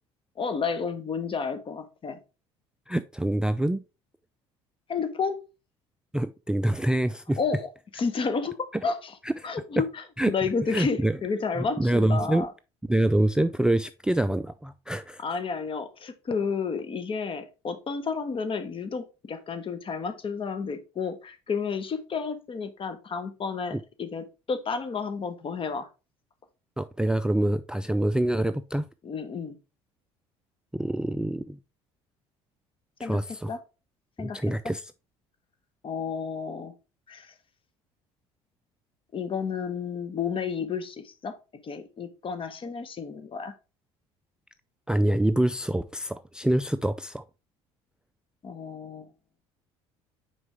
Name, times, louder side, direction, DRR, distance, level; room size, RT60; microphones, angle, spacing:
voice 1, 0.4-2.2 4.9-5.4 7.4-9.1 9.4-12.5 15.2-25.9 29.0-29.6 33.0-33.6 34.2-34.4 35.8-36.7 37.1-37.3 39.1-41.4 41.6-43.5 48.4-49.1, left 5 dB, 40° left, 1.2 m, -31 dB
voice 2, 2.9-3.8 6.1-7.4 10.2-10.3 10.7-11.2 11.8-12.5 12.9-15.2 23.7-23.8 26.8-28.9 30.7-31.6 33.0-33.5 34.2-34.8 44.9-47.2, right 1 dB, 5° right, 0.3 m, -25 dB
6.2 x 4.6 x 3.5 m
hypercardioid pair, 65°, 14 cm